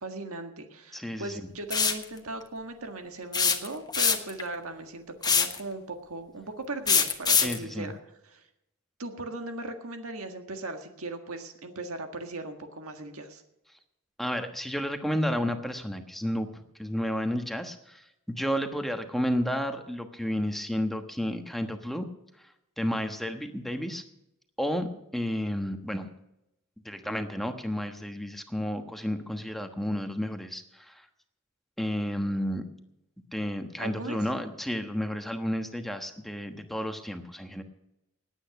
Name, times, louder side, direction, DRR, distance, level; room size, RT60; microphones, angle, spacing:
voice 1, 0.0-8.0 8.3-8.4 9.0-13.4 33.8-34.2, right 2 dB, 70° right, 6 dB, 1.7 m, -38 dB
voice 2, 0.9-1.4 7.4-7.9 14.2-22.1 22.8-24.0 24.6-24.9 25.1-26.1 26.8-31.1 31.8-32.6 33.3-37.6, equal, ahead, 6 dB, 1.2 m, -31 dB
sound 1, 1.7-2.0 3.3-4.4 5.2-5.6 6.9-7.6, left 6 dB, 20° left, 1.2 m, -23 dB
18.5 x 9.1 x 5.9 m, 0.86 s
head